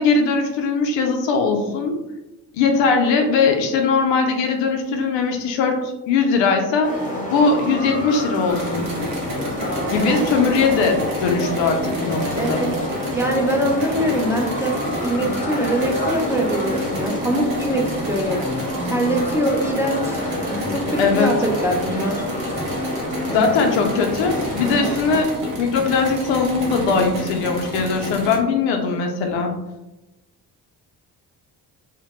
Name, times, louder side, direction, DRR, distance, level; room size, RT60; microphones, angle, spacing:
voice 1, 0.0-2.0 2.5-5.8 6.1-6.9 7.3-8.9 9.9-12.6 21.0-21.3 23.3-29.6, left 4 dB, 80° left, 4 dB, 0.5 m, -20 dB
sound 1, 6.8-25.2, left 1 dB, 20° left, 0.8 m, -28 dB
sound 2, 8.5-28.4, right 1 dB, 85° right, 0.7 m, -31 dB
voice 2, 12.4-12.7 13.1-14.8 15.0-18.4 18.8-20.2 20.7-22.2 23.3-23.8 24.7-24.9, right 1 dB, 5° right, 0 dB, 0.5 m, -23 dB
2.1 x 2.1 x 2.9 m, 0.98 s
hypercardioid pair, 45°, 43 cm